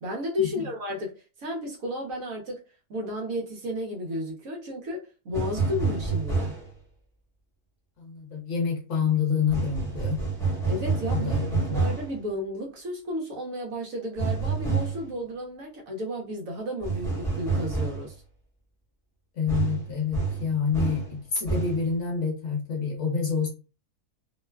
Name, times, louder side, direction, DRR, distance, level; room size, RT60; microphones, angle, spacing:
voice 1, 0.0-2.6 2.9-6.5 10.7-18.1, left 1 dB, 65° right, 1.1 m, -33 dB
sound 1, 5.3-6.7 9.5-12.1 14.2-15.1 16.8-18.1 19.5-21.1 21.4-21.9, right 4 dB, 5° left, 0.8 m, -28 dB
voice 2, 8.0-10.2 11.1-11.9 19.4-23.5, left 6 dB, 55° left, 1.0 m, -28 dB
3.0 x 2.2 x 2.2 m
omnidirectional pair, 1.6 m